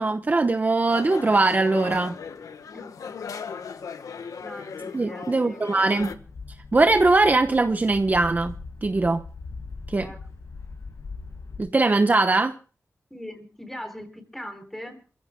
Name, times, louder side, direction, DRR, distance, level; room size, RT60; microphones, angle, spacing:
voice 1, 0.0-2.2 4.9-6.1 6.7-8.5 8.8-9.2 9.9-10.1 11.6-12.5, right 3 dB, 30° right, 1.0 m, -21 dB
sound 1, 0.9-6.2, left 6 dB, 90° left, 1.2 m, -37 dB
voice 2, 2.4-2.9 4.4-5.7 6.8-7.0 9.9-10.3 13.1-15.0, equal, 5° left, 3.8 m, -41 dB
sound 2, 6.0-11.6, left 4 dB, 70° left, 7.8 m, -40 dB
28.0 x 16.0 x 2.2 m
wide cardioid pair, 110°, 6 cm